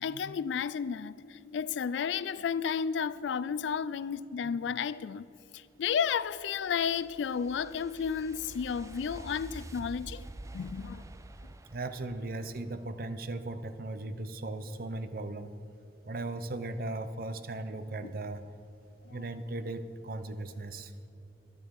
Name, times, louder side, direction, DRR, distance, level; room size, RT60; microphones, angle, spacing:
voice 1, 0.0-5.2 5.5-10.2 10.5-11.1 18.0-18.1 19.1-19.2, left 7 dB, 90° left, 0.4 m, -32 dB
sound 1, 5.7-13.0, right 2 dB, 15° right, 0.4 m, -48 dB
voice 2, 11.7-15.6 16.1-18.4 19.1-20.9, right 2 dB, 55° right, 0.7 m, -37 dB
12.5 x 11.5 x 4.7 m
head